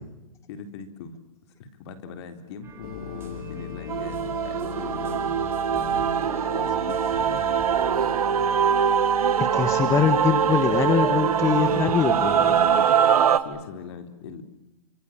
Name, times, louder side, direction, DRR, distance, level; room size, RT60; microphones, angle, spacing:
voice 1, 0.5-1.2 1.6-6.3 6.5-7.4 13.4-14.4, left 4 dB, 45° left, 8 dB, 3.9 m, -40 dB
sound 1, 2.6-8.7, right 5 dB, 15° right, 4.9 m, -46 dB
sound 2, 2.8-12.9, left 11 dB, 70° left, 3.1 m, -38 dB
Male singing / Female singing / Musical instrument, 3.9-13.4, right 8 dB, 80° right, 1.9 m, -23 dB
voice 2, 9.4-12.6, left 7 dB, 15° left, 9 dB, 1.6 m, -23 dB
29.5 x 26.5 x 7.5 m, 0.99 s
hypercardioid pair, 150°, 19 cm